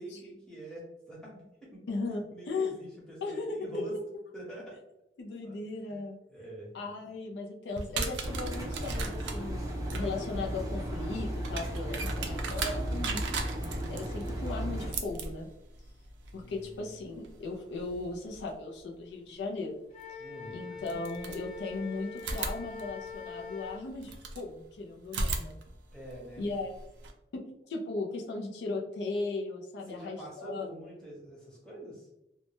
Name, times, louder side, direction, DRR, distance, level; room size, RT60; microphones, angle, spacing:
voice 1, 0.0-1.9 2.3-4.0 4.3-4.8 5.4-5.6 6.3-6.7 16.3-16.9 20.2-20.6 25.9-26.5 29.9-32.1, right 1 dB, 5° left, -6 dB, 0.8 m, -45 dB
voice 2, 1.9-2.7 3.2-3.8 5.2-6.2 6.7-9.7 9.9-13.2 13.9-15.5 16.3-19.8 20.5-25.6 26.4-26.8 27.3-30.7, left 3 dB, 75° left, 1 dB, 0.4 m, -37 dB
sound 1, 7.7-18.5 20.0-20.1 20.8-21.8 22.2-24.5 25.0-27.1, right 3 dB, 90° right, 0.4 m, -38 dB
Engine, 8.2-14.9, equal, 20° right, 0.5 m, -35 dB
Wind instrument woodwind instrument, 19.9-23.8, left 4 dB, 45° left, 0.8 m, -43 dB
2.1 x 2.0 x 2.8 m, 0.85 s
head